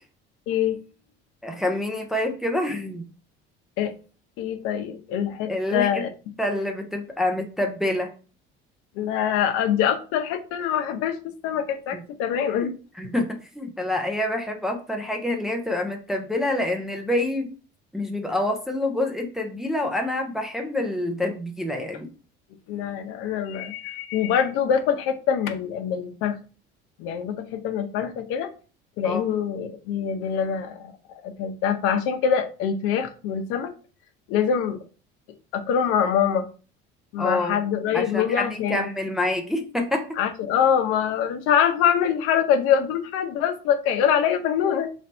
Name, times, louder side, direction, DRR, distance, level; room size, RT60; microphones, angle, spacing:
voice 1, 0.5-0.8 3.8-3.9 4.4-6.1 9.0-11.2 11.4-12.7 22.7-26.4 27.0-28.5 29.0-30.9 31.2-33.7 34.3-34.8 35.5-36.5 37.1-38.9 40.2-44.9, left 8 dB, 80° left, 6 dB, 0.7 m, -24 dB
voice 2, 1.4-3.0 5.5-6.0 6.4-8.1 12.6-12.7 13.0-13.3 13.5-17.5 17.9-22.1 29.0-29.2 37.2-37.6 37.9-40.1, left 1 dB, ahead, 2 dB, 0.4 m, -27 dB
3.2 x 2.6 x 4.2 m, 0.36 s
cardioid pair, 170°, 21 cm